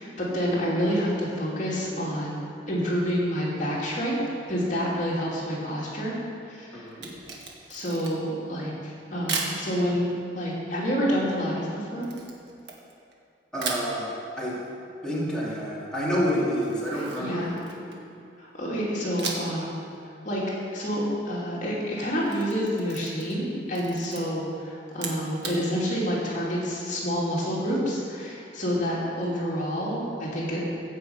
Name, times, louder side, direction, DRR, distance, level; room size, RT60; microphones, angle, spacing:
voice 1, 0.0-4.2 4.5-6.2 6.5-6.9 7.7-12.1 16.9-17.6 18.4-19.7 20.0-20.4 20.7-30.6, equal, 45° left, -6 dB, 2.8 m, -28 dB
voice 2, 6.7-7.2 13.5-14.1 14.4-14.6 15.0-17.9, equal, 5° left, -8 dB, 2.6 m, -29 dB
Camera, 6.9-8.4 9.3-9.6 12.0-13.2 13.6-13.9 16.6-18.1 19.2-19.6 19.9-20.0 22.0-23.4 23.7-24.2 24.9-25.6, right 4 dB, 70° right, 1.8 m, -35 dB
15.0 x 5.6 x 8.0 m, 2.4 s
head